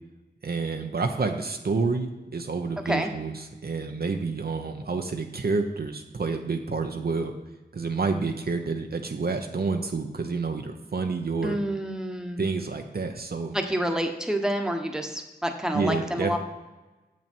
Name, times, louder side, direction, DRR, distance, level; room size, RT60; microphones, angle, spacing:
voice 1, 0.4-7.3 7.7-11.6 12.4-13.5 15.7-16.4, right 4 dB, 60° right, 5 dB, 0.7 m, -29 dB
voice 2, 11.4-12.4 13.5-16.4, equal, 5° right, 4 dB, 1.1 m, -28 dB
7.1 x 6.2 x 4.4 m, 1.1 s
cardioid pair, 50°, 18 cm